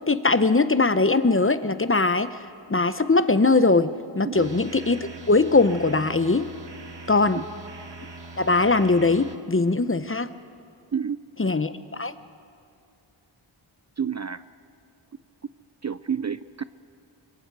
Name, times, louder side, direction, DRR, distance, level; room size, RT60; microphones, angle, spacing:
voice 1, 0.1-2.3 2.7-6.5 7.1-7.4 8.4-10.3 11.4-12.1, left 3 dB, 25° left, 12 dB, 0.8 m, -21 dB
sound 1, 4.3-9.4, right 3 dB, 60° right, 1.5 m, -42 dB
voice 2, 14.0-14.4 15.8-16.6, right 7 dB, 35° right, 14 dB, 0.5 m, -29 dB
26.0 x 23.0 x 4.7 m, 2.4 s
wide cardioid pair, 50°, 48 cm